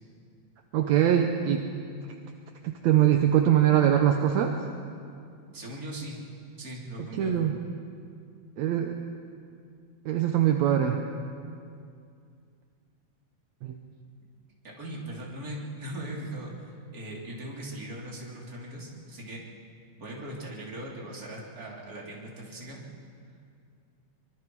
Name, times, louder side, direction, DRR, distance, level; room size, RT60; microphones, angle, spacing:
voice 1, 0.7-1.7 2.8-4.5 7.2-7.6 8.6-9.0 10.1-11.0 13.6-13.7, right 10 dB, 70° right, 4 dB, 1.7 m, -22 dB
voice 2, 5.5-6.2 6.6-7.3 14.6-19.4 19.9-22.8, right 1 dB, 25° right, -3 dB, 3.2 m, -39 dB
24.0 x 24.0 x 4.7 m, 2.3 s
omnidirectional pair, 4.2 m